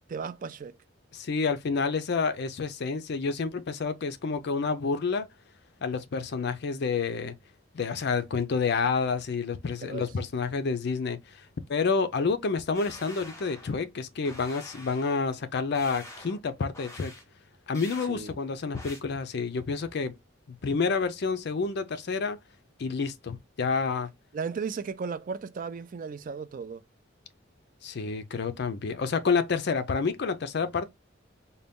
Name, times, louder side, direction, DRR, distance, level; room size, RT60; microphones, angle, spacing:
voice 1, 0.1-0.8 9.8-10.1 18.1-18.4 24.3-26.8, right 5 dB, 45° right, 0.4 m, -35 dB
voice 2, 1.1-5.3 5.8-7.3 7.7-11.4 11.7-17.1 17.7-20.1 20.5-22.4 22.8-24.1 27.8-30.9, left 4 dB, 55° left, 0.5 m, -29 dB
sound 1, 12.7-13.8 14.2-15.2 15.7-16.4 16.7-17.2 17.7-18.1 18.7-19.0, left 1 dB, 15° left, 1.0 m, -46 dB
3.9 x 2.2 x 3.5 m
head